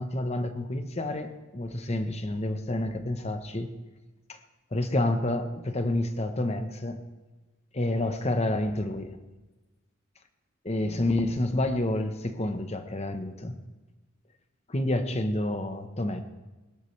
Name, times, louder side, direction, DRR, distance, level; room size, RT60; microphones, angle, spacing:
voice 1, 0.0-3.7 4.3-4.4 4.7-7.0 7.7-9.2 10.6-13.6 14.7-16.2, left 1 dB, 30° left, 8 dB, 1.0 m, -29 dB
20.5 x 12.5 x 3.3 m, 1.2 s
head